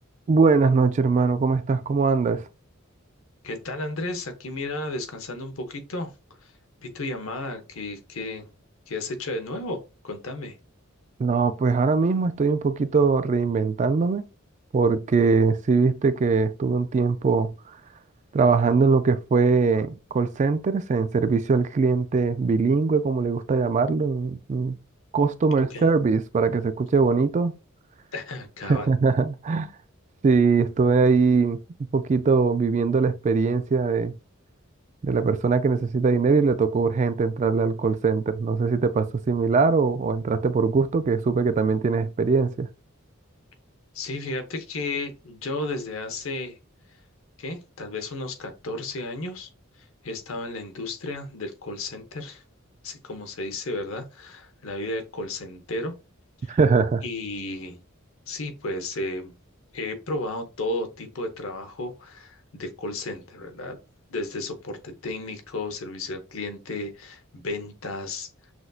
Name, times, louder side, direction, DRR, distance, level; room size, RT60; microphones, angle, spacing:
voice 1, 0.3-2.4 11.2-14.2 14.7-17.5 18.3-24.8 25.1-27.5 28.7-29.7 30.2-31.6 31.9-34.1 35.0-42.7 56.5-57.0, right 4 dB, 35° right, 0.3 m, -21 dB
voice 2, 3.4-6.1 6.4-6.5 6.8-8.5 8.9-10.6 25.6-25.9 28.1-28.9 43.9-46.6 47.4-49.5 50.0-52.4 52.8-55.9 56.4-56.6 57.0-57.8 58.3-59.4 59.7-63.8 64.1-68.3, left 2 dB, 75° left, 0.9 m, -33 dB
6.0 x 2.6 x 2.3 m
head